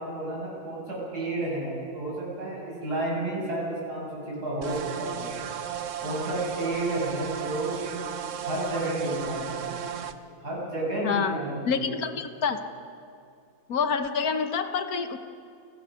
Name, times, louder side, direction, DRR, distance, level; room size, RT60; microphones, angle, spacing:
voice 1, 0.0-5.3 6.0-7.8 8.4-9.6 10.4-12.0, right 2 dB, 90° right, -4 dB, 8.6 m, -31 dB
sound 1, 4.6-10.1, right 8 dB, 55° right, 1.2 m, -35 dB
voice 2, 11.0-11.4 11.7-12.6 13.7-15.2, left 6 dB, 65° left, 8 dB, 1.6 m, -27 dB
30.0 x 18.0 x 6.5 m, 2.5 s
omnidirectional pair, 1.7 m